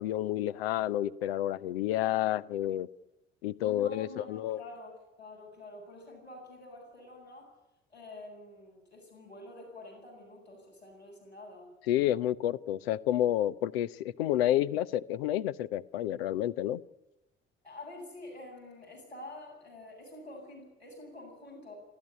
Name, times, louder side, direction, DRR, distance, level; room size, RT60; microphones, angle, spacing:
voice 1, 0.0-2.9 3.4-4.6 11.9-16.8, left 12 dB, 70° left, 16 dB, 0.8 m, -30 dB
voice 2, 3.6-7.5 7.9-11.7 17.6-21.7, left 2 dB, 90° left, -4 dB, 7.7 m, -48 dB
27.0 x 13.5 x 10.0 m, 0.97 s
figure-of-eight pair, 45°, 31 cm